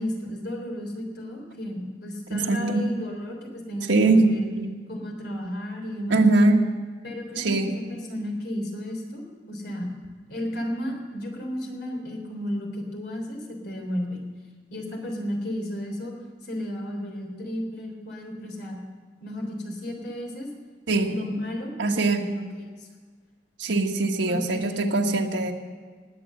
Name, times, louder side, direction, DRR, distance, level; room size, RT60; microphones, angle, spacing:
voice 1, 0.0-4.4 4.9-6.2 7.0-9.9 10.3-14.2 14.7-16.1 16.4-18.8 19.2-20.5 21.1-22.4 22.8-22.9 24.2-25.2, equal, 65° left, 1 dB, 3.6 m, -33 dB
voice 2, 2.3-2.9 3.9-4.7 6.1-6.6 7.4-7.7 20.9-21.1 21.8-22.2 23.6-25.5, right 2 dB, 90° right, 2 dB, 1.5 m, -21 dB
19.0 x 8.5 x 7.7 m, 1.5 s
head